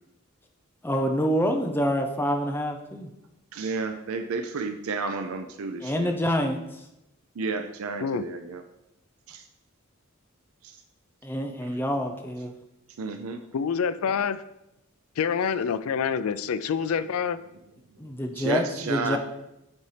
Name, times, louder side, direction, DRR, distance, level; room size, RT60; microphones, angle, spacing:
voice 1, 0.8-3.1 5.8-6.6 11.2-12.5 18.0-19.2, equal, 10° left, 3 dB, 0.6 m, -27 dB
voice 2, 3.5-6.1 7.4-8.6 9.3-9.4 10.6-10.8 13.0-13.4 18.3-19.2, right 4 dB, 80° right, 7 dB, 0.5 m, -31 dB
voice 3, 13.5-14.4 15.2-17.4, left 6 dB, 90° left, 14 dB, 0.4 m, -26 dB
9.3 x 4.2 x 3.3 m, 0.88 s
head